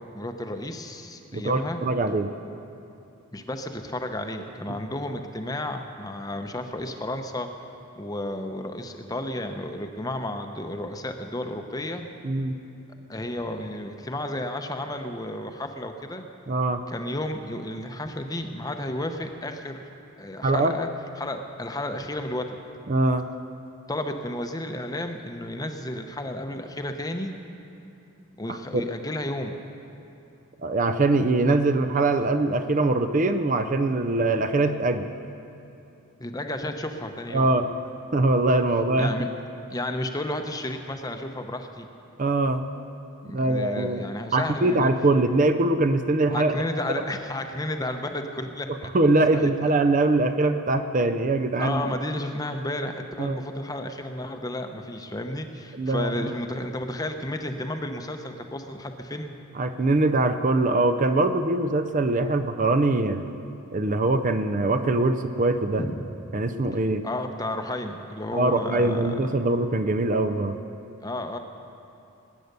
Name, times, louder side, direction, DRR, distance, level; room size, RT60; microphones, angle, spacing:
voice 1, 0.1-1.8 3.3-7.5 8.0-12.1 13.1-16.2 16.9-19.8 20.2-20.9 21.2-22.6 23.9-27.3 28.4-29.6 36.2-37.5 39.0-39.3 39.7-41.9 43.2-44.9 46.3-48.9 49.3-49.7 51.6-59.3 65.8-66.0 67.0-69.3 71.0-71.4, left 1 dB, 15° left, 6 dB, 0.7 m, -32 dB
voice 2, 1.3-2.3 4.8-4.9 12.2-12.6 16.5-16.8 20.4-20.8 22.9-23.3 28.5-28.8 30.6-35.1 37.3-37.7 38.1-39.1 42.2-42.7 43.3-44.1 44.3-46.6 46.9-47.0 48.9-51.9 53.2-53.4 55.7-56.3 59.5-63.3 63.7-65.8 66.3-67.0 68.3-70.6, right 2 dB, 35° right, 8 dB, 0.5 m, -23 dB
20.5 x 9.4 x 6.7 m, 2.7 s
head